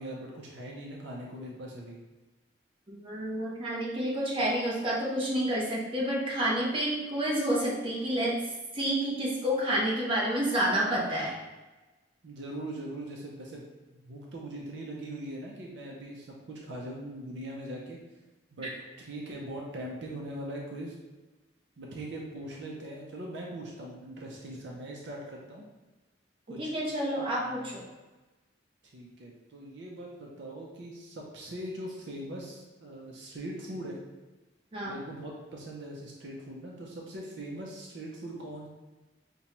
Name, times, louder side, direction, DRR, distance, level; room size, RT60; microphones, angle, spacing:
voice 1, 0.0-2.0 12.2-18.0 18.5-18.7 19.0-21.0 21.8-25.7 26.5-26.7 27.4-27.8 28.9-34.0 34.8-38.7, right 1 dB, 65° right, -1 dB, 0.6 m, -41 dB
voice 2, 2.9-11.4 18.6-18.7 26.6-27.8 34.7-35.0, right 1 dB, 30° right, -5 dB, 0.8 m, -29 dB
5.2 x 2.2 x 2.9 m, 1.1 s
head